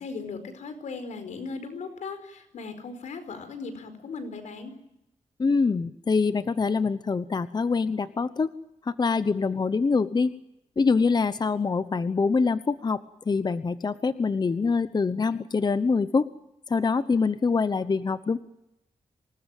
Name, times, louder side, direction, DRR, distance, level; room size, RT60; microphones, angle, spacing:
voice 1, 0.0-4.7, left 4 dB, 90° left, 9 dB, 4.8 m, -37 dB
voice 2, 5.4-8.5 8.8-10.3 10.8-13.0 13.3-16.3 16.7-18.4, left 4 dB, 35° left, 13 dB, 0.9 m, -24 dB
26.0 x 20.0 x 9.1 m, 0.85 s
cardioid pair, 95°, 12 cm